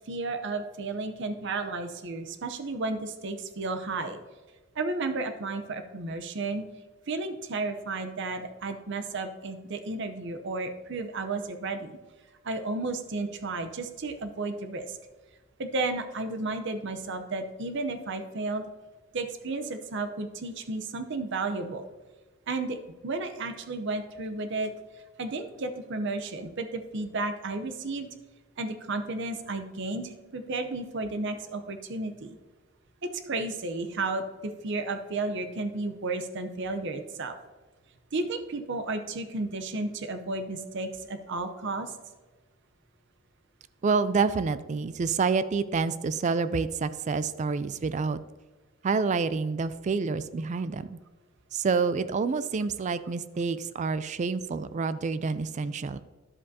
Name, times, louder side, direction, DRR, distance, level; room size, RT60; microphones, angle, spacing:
voice 1, 0.1-4.2 4.8-6.6 7.1-12.0 12.4-15.0 15.6-18.6 19.1-21.9 22.5-22.8 23.0-24.7 25.2-28.1 28.6-32.4 33.0-37.3 38.1-41.9, right 3 dB, 60° right, 8 dB, 0.7 m, -33 dB
voice 2, 43.8-48.2 48.8-51.0 51.5-56.0, right 4 dB, 35° right, 14 dB, 0.3 m, -28 dB
11.0 x 7.6 x 2.7 m, 1.2 s
head